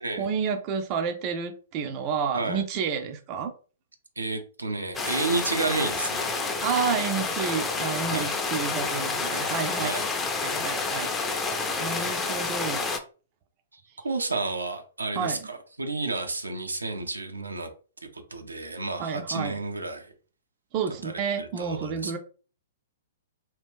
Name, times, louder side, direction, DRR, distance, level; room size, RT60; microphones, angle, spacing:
voice 1, 0.2-3.5 6.6-9.9 10.4-12.8 15.2-15.4 19.0-19.6 20.7-22.2, right 6 dB, 35° right, 6 dB, 0.5 m, -30 dB
voice 2, 4.2-6.4 8.1-8.3 9.6-10.1 13.7-17.7 18.0-20.1 21.0-22.2, right 3 dB, 80° right, 5 dB, 0.6 m, -31 dB
sound 1, 4.9-13.0, left 4 dB, 15° left, 0.5 m, -29 dB
2.8 x 2.4 x 3.5 m, 0.37 s
figure-of-eight pair, 115°, 0 cm